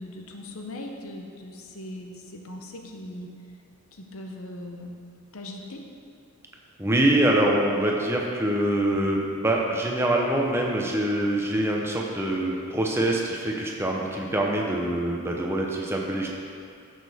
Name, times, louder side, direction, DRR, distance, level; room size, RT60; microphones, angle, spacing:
voice 1, 0.0-3.3 3.9-5.0 5.3-5.8, left 1 dB, 80° left, 2 dB, 0.8 m, -39 dB
voice 2, 6.8-16.3, right 1 dB, 10° right, -1 dB, 0.7 m, -24 dB
10.5 x 6.4 x 3.5 m, 2.4 s
head